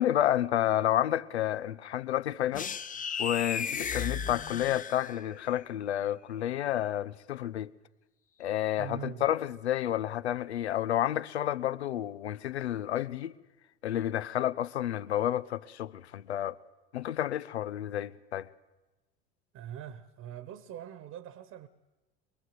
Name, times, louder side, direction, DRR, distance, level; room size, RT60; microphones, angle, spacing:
voice 1, 0.0-2.7 3.2-7.7 8.4-13.3 13.8-16.6 16.9-18.5, left 12 dB, 85° left, 0.9 m, -30 dB
sound 1, 2.5-5.4, left 7 dB, 25° left, 1.1 m, -35 dB
voice 2, 8.8-9.3 19.5-21.7, right 9 dB, 50° right, 1.5 m, -42 dB
23.0 x 22.5 x 7.9 m
hypercardioid pair, 75°, 32 cm